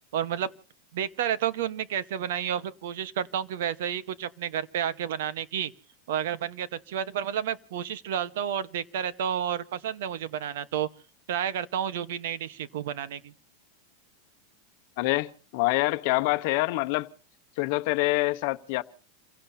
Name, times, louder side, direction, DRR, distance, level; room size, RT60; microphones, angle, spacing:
voice 1, 0.1-0.5 0.9-5.7 6.1-10.9 11.3-13.3, right 9 dB, 70° right, 1.2 m, -30 dB
voice 2, 15.0-17.1 17.6-18.8, left 20 dB, 55° left, 0.9 m, -26 dB
29.0 x 17.0 x 2.8 m
supercardioid pair, 150°, 0 cm